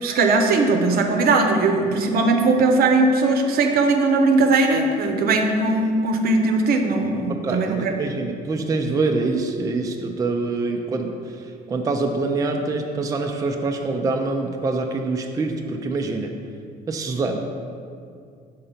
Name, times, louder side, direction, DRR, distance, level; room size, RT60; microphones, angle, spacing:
voice 1, 0.0-8.0, right 3 dB, 65° right, 4 dB, 0.7 m, -19 dB
voice 2, 7.3-16.3 16.9-17.4, right 3 dB, 20° right, 3 dB, 0.4 m, -25 dB
5.3 x 3.8 x 5.7 m, 2.3 s
cardioid pair, 110°, 17 cm